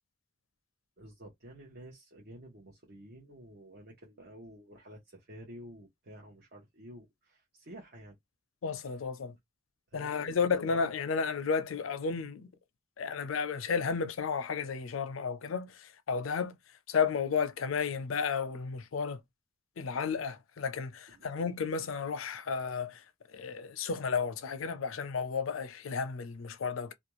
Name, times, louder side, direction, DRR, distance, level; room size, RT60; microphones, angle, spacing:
voice 1, 1.0-8.2 9.9-10.8 21.1-21.3, right 1 dB, 55° right, 0.8 m, -51 dB
voice 2, 8.6-9.4 9.9-12.5 13.0-19.2 19.8-26.9, left 5 dB, 85° left, 0.5 m, -33 dB
2.5 x 2.2 x 3.0 m
head